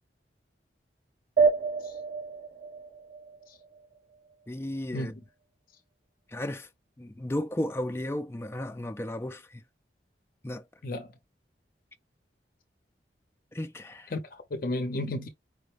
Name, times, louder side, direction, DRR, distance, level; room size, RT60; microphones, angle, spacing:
sound 1, 1.4-4.3, right 5 dB, 45° right, 1.3 m, -28 dB
voice 1, 4.5-5.1 6.3-6.7 7.0-9.6 10.4-10.6 13.5-14.1, left 1 dB, 15° left, 0.4 m, -34 dB
voice 2, 14.1-15.3, left 1 dB, 50° left, 0.6 m, -33 dB
4.9 x 2.1 x 3.2 m
head